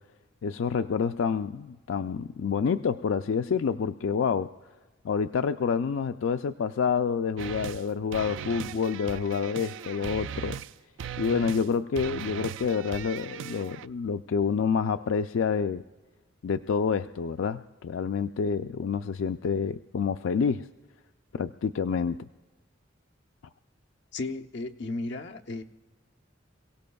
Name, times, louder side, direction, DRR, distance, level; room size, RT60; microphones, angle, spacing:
voice 1, 0.4-4.5 5.0-10.6 11.2-15.8 16.4-20.7 21.3-22.3, left 6 dB, 85° left, 9 dB, 0.4 m, -28 dB
sound 1, 7.4-7.8 8.1-10.7 11.0-11.7 11.9-13.9, right 8 dB, 75° right, 0.3 m, -38 dB
voice 2, 24.1-25.6, left 2 dB, 60° left, 4 dB, 0.8 m, -34 dB
28.0 x 17.0 x 2.3 m, 1.3 s
head